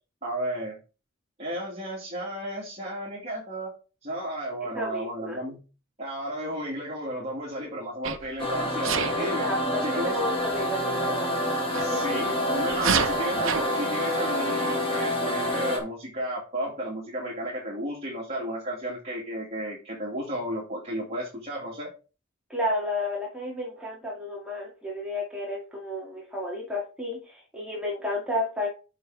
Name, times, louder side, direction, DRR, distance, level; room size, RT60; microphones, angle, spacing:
voice 1, 0.2-0.8 1.4-3.7 4.0-5.6 6.0-9.5 9.8-10.2 11.8-21.9, right 1 dB, 35° right, -4 dB, 2.4 m, -33 dB
voice 2, 4.6-5.4 9.2-11.4 11.9-12.2 22.5-28.7, left 1 dB, 5° right, -4 dB, 2.2 m, -32 dB
Sneeze, 8.0-8.3 8.8-9.2 11.7-11.9 12.7-13.6, right 7 dB, 80° right, 0.9 m, -26 dB
sound 1, 8.4-15.8, equal, 30° left, 2.2 m, -27 dB
6.8 x 5.9 x 4.8 m, 0.33 s
head